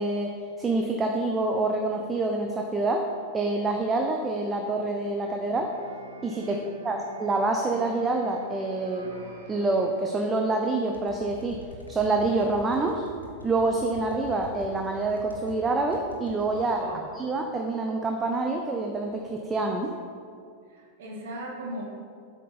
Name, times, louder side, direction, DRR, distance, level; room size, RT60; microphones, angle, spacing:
voice 1, 0.0-3.1 3.3-5.7 6.2-6.6 6.8-9.1 9.5-11.6 11.9-13.0 13.4-16.8 17.1-19.9, right 2 dB, 15° right, 2 dB, 0.7 m, -27 dB
sound 1, 5.6-11.6, left 1 dB, 80° right, 1.6 m, -47 dB
sound 2, 10.9-15.6 15.9-16.7, left 1 dB, 80° left, 1.2 m, -45 dB
voice 2, 16.7-17.0 20.7-21.8, right 1 dB, 55° right, -1 dB, 1.4 m, -38 dB
8.4 x 5.7 x 5.7 m, 2.3 s
figure-of-eight pair, 90°, 0 cm